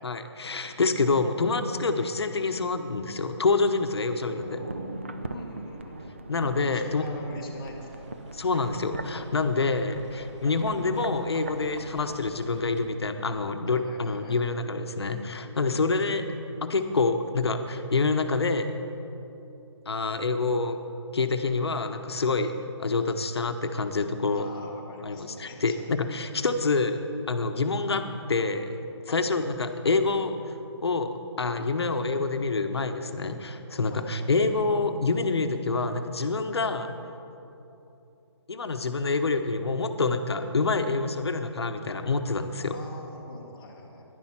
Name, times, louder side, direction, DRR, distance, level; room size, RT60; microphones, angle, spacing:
voice 1, 0.0-4.6 6.3-7.0 8.3-16.2 16.6-18.7 19.9-20.8 21.1-22.5 22.8-24.5 25.0-27.0 27.3-28.0 28.3-28.7 29.1-30.5 30.8-36.9 38.5-42.7, left 3 dB, 60° left, 7 dB, 0.8 m, -27 dB
sound 1, 4.2-13.3 13.6-13.7, right 2 dB, 25° right, 0.4 m, -41 dB
voice 2, 5.3-6.0 6.5-8.0 13.7-14.4 24.3-25.9 29.1-29.2 33.9-34.1 42.7-44.0, left 2 dB, 10° left, -4 dB, 0.8 m, -44 dB
sound 2, 7.8-12.8, right 1 dB, 90° right, 1.6 m, -49 dB
11.0 x 10.5 x 5.8 m, 2.8 s
hypercardioid pair, 180°, 15 cm